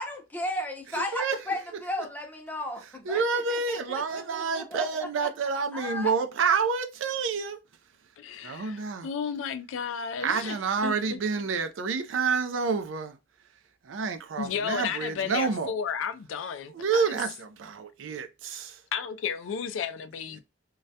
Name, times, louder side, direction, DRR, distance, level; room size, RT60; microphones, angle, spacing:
voice 1, 0.0-3.2 3.5-4.9 5.7-6.1, left 1 dB, 10° left, 0.6 m, -34 dB
voice 2, 0.9-1.8 2.8-7.6 8.4-9.1 10.2-13.2 13.8-15.7 16.7-18.8, right 5 dB, 85° right, 0.4 m, -29 dB
voice 3, 8.2-10.6 10.8-11.2 14.4-17.1 18.9-20.4, left 7 dB, 85° left, 0.3 m, -33 dB
2.3 x 2.1 x 2.7 m
head